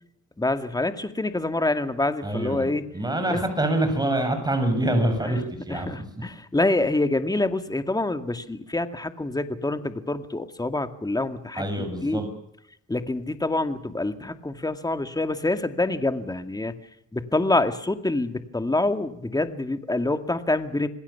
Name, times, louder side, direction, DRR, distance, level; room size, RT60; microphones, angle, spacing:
voice 1, 0.4-2.8 3.3-3.4 5.3-5.4 5.7-12.2 12.9-16.7 17.1-20.9, left 2 dB, 15° left, 9 dB, 2.2 m, -26 dB
voice 2, 2.2-2.7 2.9-5.9 11.6-12.3, right 1 dB, 15° right, 6 dB, 7.3 m, -25 dB
27.0 x 20.0 x 7.2 m, 0.77 s
cardioid pair, 90°, 30 cm